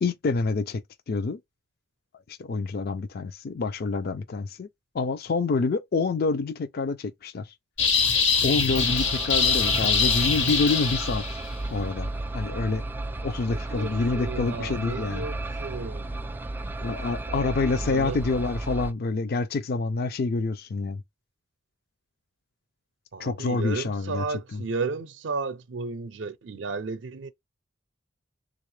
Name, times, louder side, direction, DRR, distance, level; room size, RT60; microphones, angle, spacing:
voice 1, 0.0-1.4 2.4-4.7 4.9-7.4 8.4-11.2 11.7-12.1 12.3-12.8 13.2-15.2 16.8-21.0 23.2-24.2 24.5-24.6, left 3 dB, 55° left, 0.4 m, -27 dB
sound 1, 7.8-11.5, left 5 dB, 70° left, 1.2 m, -23 dB
sound 2, 8.7-18.9, right 2 dB, 10° right, 0.3 m, -33 dB
voice 2, 13.5-16.1 17.3-18.2 23.1-27.3, right 4 dB, 75° right, 0.5 m, -34 dB
3.5 x 2.4 x 3.1 m
head